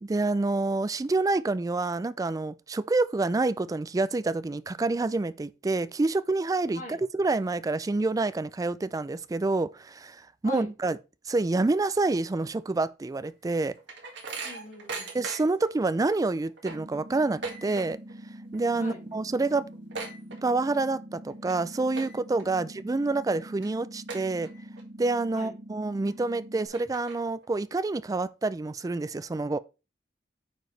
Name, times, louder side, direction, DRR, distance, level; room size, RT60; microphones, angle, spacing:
voice 1, 0.0-6.8 7.1-11.0 11.3-13.7 15.1-18.0 18.5-19.6 20.4-24.5 25.0-29.6, right 3 dB, 20° right, 0.3 m, -27 dB
sound 1, 13.2-15.7 16.1-16.2 16.5-18.2 18.4-18.8 19.1-19.2 19.5-20.9 21.3-21.5 21.9-22.4 22.9-23.0 23.6-23.7 24.1-24.8 25.2-25.3 26.1-26.2 26.6-27.5, right 3 dB, 70° right, 1.9 m, -39 dB
voice 2, 14.4-15.1 18.8-19.0 22.5-22.7 25.3-25.5, left 3 dB, 40° left, 2.5 m, -42 dB
sound 2, 16.7-26.7, right 1 dB, 40° right, 1.4 m, -45 dB
sound 3, 18.7-22.6, left 1 dB, 20° left, 1.9 m, -58 dB
9.0 x 4.8 x 3.2 m
head